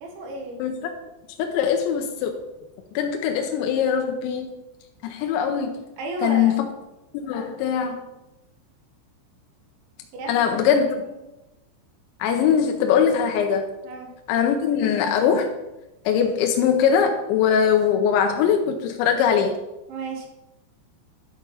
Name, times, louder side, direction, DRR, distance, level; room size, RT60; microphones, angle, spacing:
voice 1, 0.0-0.6 6.0-6.6 10.1-11.0 13.8-14.1 19.9-20.3, right 2 dB, 70° right, 2 dB, 3.4 m, -33 dB
voice 2, 0.6-0.9 1.4-2.3 3.0-4.5 5.0-5.8 6.2-6.7 7.1-8.0 10.3-10.9 12.2-13.7 14.3-15.5 16.1-19.6, left 7 dB, 80° left, 4 dB, 2.8 m, -21 dB
11.0 x 4.4 x 5.6 m, 0.96 s
omnidirectional pair, 5.8 m